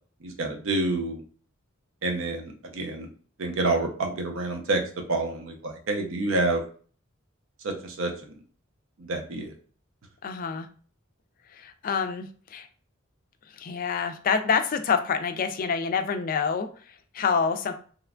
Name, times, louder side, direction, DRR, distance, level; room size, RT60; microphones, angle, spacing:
voice 1, 0.2-1.2 2.0-3.1 3.4-4.8 5.1-6.6 7.6-8.4 9.0-9.5, right 2 dB, 70° right, 3 dB, 0.6 m, -28 dB
voice 2, 10.2-10.7 11.5-12.7 13.5-17.7, left 6 dB, 45° left, 8 dB, 0.3 m, -27 dB
3.0 x 2.2 x 2.4 m, 0.43 s
head